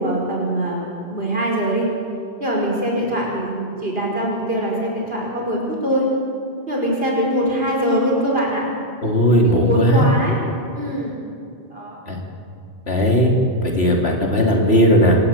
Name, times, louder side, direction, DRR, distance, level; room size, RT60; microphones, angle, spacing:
voice 1, 0.0-1.9 2.4-6.1 6.7-8.6 9.6-10.4 10.8-11.2 11.7-12.0, equal, 70° right, -2 dB, 5.4 m, -22 dB
voice 2, 9.0-10.1 12.1-12.2 12.9-13.3 13.6-15.2, equal, 85° left, 0 dB, 3.5 m, -16 dB
25.5 x 13.5 x 9.2 m, 2.3 s
omnidirectional pair, 1.0 m